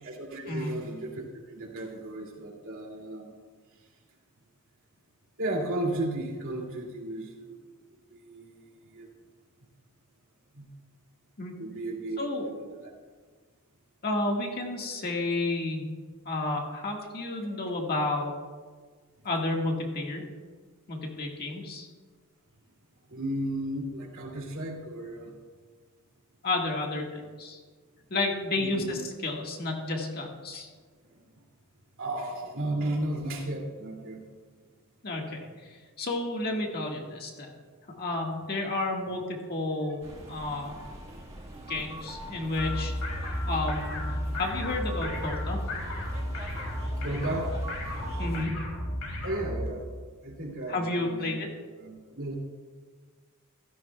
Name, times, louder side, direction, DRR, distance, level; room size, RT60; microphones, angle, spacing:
voice 1, 0.0-3.3 5.4-7.6 8.1-9.1 10.5-10.7 11.6-12.2 12.4-12.9 17.4-17.6 23.1-25.3 28.6-29.0 31.1-31.2 32.0-34.2 40.8-40.9 41.5-41.6 42.2-42.4 46.9-47.6 49.2-49.9 50.2-51.3 51.8-52.4, right 1 dB, 65° right, -2 dB, 2.6 m, -34 dB
voice 2, 14.0-15.9 16.3-18.4 19.2-20.2 20.9-21.9 26.4-27.6 28.1-30.7 35.0-37.5 38.0-40.0 40.3-40.8 41.7-42.9 43.5-45.6 48.2-48.6 50.7-51.5, left 2 dB, 45° left, 0 dB, 1.7 m, -31 dB
sound 1, 40.0-48.5, right 1 dB, 30° right, 1.5 m, -44 dB
sound 2, 42.6-49.7, left 1 dB, 85° left, 3.1 m, -33 dB
15.5 x 13.5 x 2.3 m, 1.5 s
head